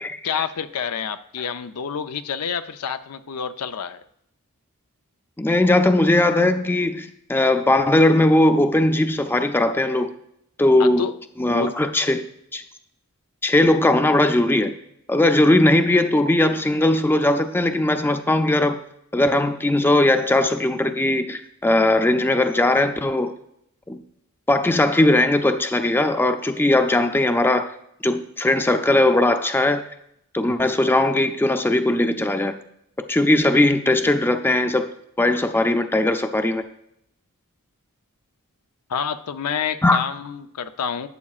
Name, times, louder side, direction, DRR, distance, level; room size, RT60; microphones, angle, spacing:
voice 1, 0.2-4.0 10.8-11.1 11.5-11.7 38.9-41.1, left 7 dB, 80° left, 0.5 m, -28 dB
voice 2, 5.4-10.1 10.6-11.0 11.4-12.3 12.5-12.6 13.4-14.7 15.1-18.8 19.1-23.3 23.9-24.0 24.5-27.7 28.0-29.8 30.3-32.6 33.1-34.9 35.2-36.6 39.8-40.0, left 1 dB, 10° left, 0.4 m, -19 dB
12.0 x 8.3 x 2.4 m
head